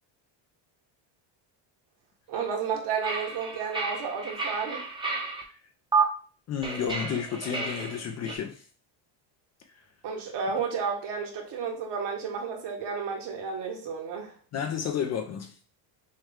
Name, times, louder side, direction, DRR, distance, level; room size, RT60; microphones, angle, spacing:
voice 1, 2.3-4.8 10.0-14.3, right 6 dB, 55° right, 1.5 m, -32 dB
sound 1, 3.0-5.4 5.9-6.0 6.6-8.4, right 4 dB, 10° right, 0.7 m, -31 dB
voice 2, 6.5-8.7 14.5-15.6, left 7 dB, 35° left, 0.4 m, -31 dB
6.4 x 2.2 x 3.5 m
cardioid pair, 140°, 49 cm